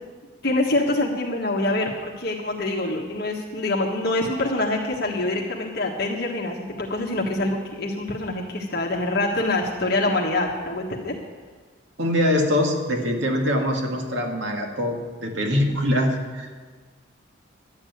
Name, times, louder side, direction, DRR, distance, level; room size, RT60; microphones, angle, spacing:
voice 1, 0.4-11.1, left 2 dB, 55° left, -1 dB, 1.4 m, -25 dB
voice 2, 12.0-16.5, left 1 dB, 75° right, 2 dB, 2.1 m, -23 dB
11.5 x 8.6 x 9.3 m, 1.5 s
head